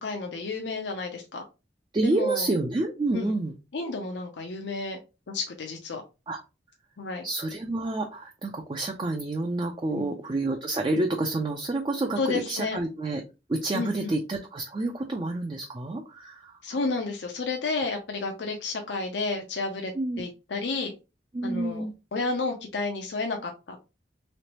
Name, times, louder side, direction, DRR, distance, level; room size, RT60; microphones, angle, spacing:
voice 1, 0.0-1.4 2.0-2.5 3.1-3.3 3.7-5.0 5.3-6.0 7.0-7.2 9.9-10.1 12.2-12.8 13.7-14.1 16.6-19.9 20.2-20.9 21.4-21.8 22.1-23.8, left 3 dB, 75° left, 0.6 m, -31 dB
voice 2, 1.9-3.5 6.3-6.4 7.2-13.2 13.5-16.6 19.9-20.2 21.3-21.9, right 2 dB, 25° right, 0.4 m, -29 dB
3.2 x 3.0 x 2.9 m
head